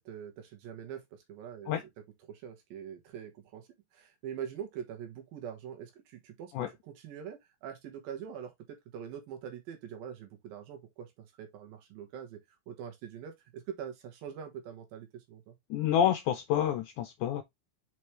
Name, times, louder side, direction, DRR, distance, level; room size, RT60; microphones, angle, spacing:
voice 1, 0.1-3.7 3.9-6.5 6.8-12.4 12.7-15.6, right 8 dB, 75° right, 3.1 m, -44 dB
voice 2, 15.7-17.4, left 10 dB, 80° left, 1.7 m, -28 dB
6.0 x 5.2 x 3.2 m
omnidirectional pair, 4.2 m